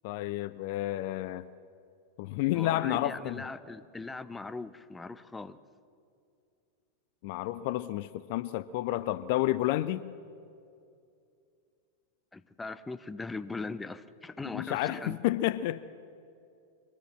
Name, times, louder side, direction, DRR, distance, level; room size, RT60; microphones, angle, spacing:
voice 1, 0.0-1.5 2.2-3.4 7.2-10.0 14.4-15.8, left 15 dB, 50° left, 0.5 m, -30 dB
voice 2, 2.5-5.6 12.3-15.2, left 3 dB, 10° left, 0.7 m, -40 dB
24.0 x 18.0 x 7.5 m
figure-of-eight pair, 90°, 0 cm